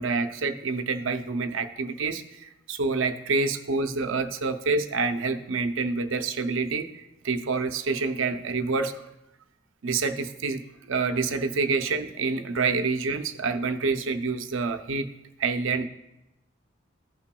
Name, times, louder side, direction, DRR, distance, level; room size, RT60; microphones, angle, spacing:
voice 1, 0.0-9.0 9.8-10.6 10.9-15.1 15.4-15.8, right 4 dB, 85° right, 8 dB, 0.6 m, -27 dB
15.0 x 5.8 x 2.3 m, 0.91 s
head